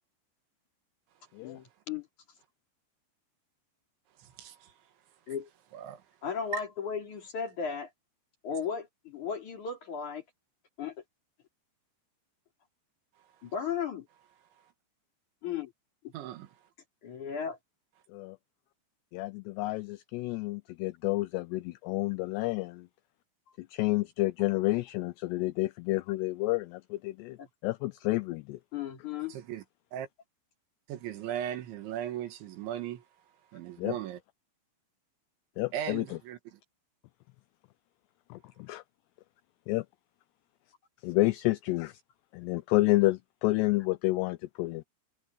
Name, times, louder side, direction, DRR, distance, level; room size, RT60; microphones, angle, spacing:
voice 1, 1.4-2.1 5.3-5.5 6.2-7.9 8.4-10.2 10.8-11.0 13.4-14.1 15.4-15.7 16.0-16.1 17.0-17.6 27.4-27.5 28.7-29.4, left 7 dB, 45° left, 4.6 m, -35 dB
voice 2, 4.2-4.7 5.7-6.0 6.5-6.6 16.1-16.5 29.3-29.6 29.9-30.1 30.9-33.0 33.5-34.2 35.7-36.6, right 11 dB, 75° right, 4.1 m, -37 dB
voice 3, 19.1-22.9 23.6-27.4 27.6-28.6 33.8-34.0 35.6-36.2 38.3-38.8 39.7-39.9 41.0-42.0 42.3-44.8, left 20 dB, 85° left, 2.4 m, -30 dB
omnidirectional pair, 5.4 m